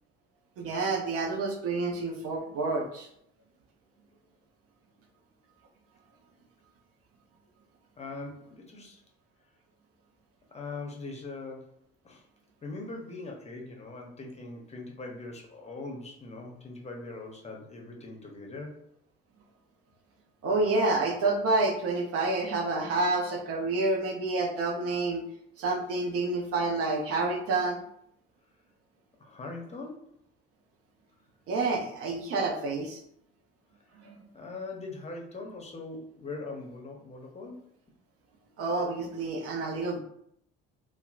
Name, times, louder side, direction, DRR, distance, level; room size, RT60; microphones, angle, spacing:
voice 1, 0.6-3.1 20.4-25.2 25.6-27.8 31.5-33.0 34.0-34.2 38.6-40.0, right 3 dB, 50° right, 2 dB, 0.7 m, -28 dB
voice 2, 8.0-9.0 10.5-11.7 12.0-12.2 12.6-18.9 29.2-30.1 34.3-37.7, left 3 dB, 20° left, 0 dB, 0.7 m, -41 dB
2.8 x 2.0 x 2.4 m, 0.70 s
figure-of-eight pair, 55°, 31 cm